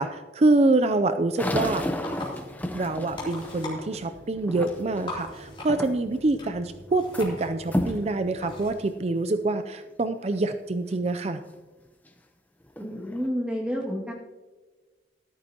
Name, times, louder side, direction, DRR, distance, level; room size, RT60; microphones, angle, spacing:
voice 1, 0.0-1.8 2.7-11.4, right 2 dB, 35° right, 10 dB, 0.4 m, -25 dB
sound 1, 1.4-5.1 5.7-6.2 6.6-7.3 7.7-8.0 8.7-8.8 9.5-9.6 12.1-12.2 12.7-13.3, left 1 dB, 10° left, 0.7 m, -32 dB
sound 2, 1.6-8.7, left 1 dB, 30° left, 3.8 m, -41 dB
voice 2, 12.8-14.1, equal, 5° right, -4 dB, 2.0 m, -30 dB
14.0 x 12.5 x 2.9 m, 1.3 s
head